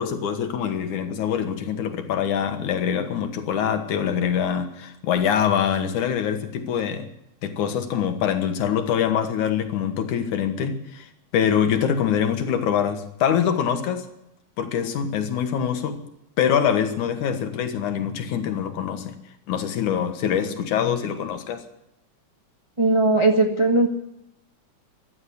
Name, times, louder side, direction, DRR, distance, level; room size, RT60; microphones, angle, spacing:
voice 1, 0.0-7.1 7.4-11.1 11.3-14.1 14.6-16.0 16.4-19.2 19.5-21.6, left 8 dB, 85° left, 7 dB, 2.9 m, -24 dB
voice 2, 22.8-23.9, right 2 dB, 40° right, 2 dB, 0.4 m, -18 dB
15.5 x 11.5 x 8.1 m, 0.82 s
omnidirectional pair, 3.4 m